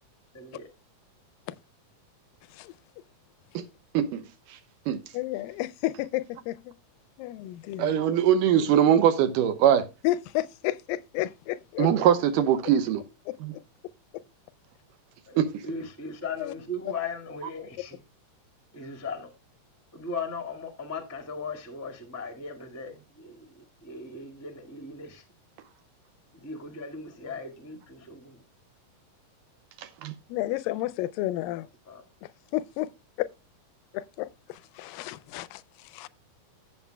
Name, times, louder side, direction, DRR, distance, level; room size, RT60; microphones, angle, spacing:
voice 1, 0.3-0.7 15.3-18.0 18.7-19.3 19.9-25.2 26.3-28.4 31.9-32.0, left 3 dB, 10° left, 0.7 m, -38 dB
voice 2, 5.1-6.8 7.2-7.9 10.0-11.9 13.3-13.6 14.1-14.2 16.4-16.5 30.3-31.7 32.2-32.9 33.9-36.1, left 16 dB, 85° left, 2.3 m, -32 dB
voice 3, 7.8-9.9 11.8-13.0 13.4-13.5 15.4-15.5 30.0-30.1, right 9 dB, 75° right, 2.5 m, -22 dB
15.0 x 7.2 x 2.2 m
omnidirectional pair, 3.9 m